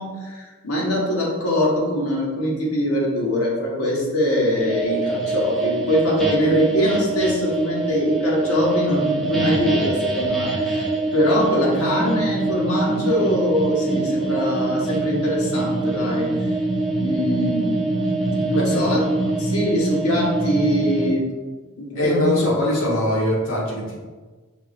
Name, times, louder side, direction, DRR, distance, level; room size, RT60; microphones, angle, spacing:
voice 1, 0.0-10.8 11.1-16.3 17.0-17.9 18.4-19.0 19.4-21.2 21.8-22.4, left 1 dB, 85° left, -4 dB, 1.3 m, -22 dB
sound 1, 4.6-21.1, right 2 dB, ahead, 0.5 m, -24 dB
voice 2, 18.5-19.0 21.9-24.0, left 1 dB, 60° left, -5 dB, 1.2 m, -22 dB
5.7 x 3.1 x 2.5 m, 1.3 s
head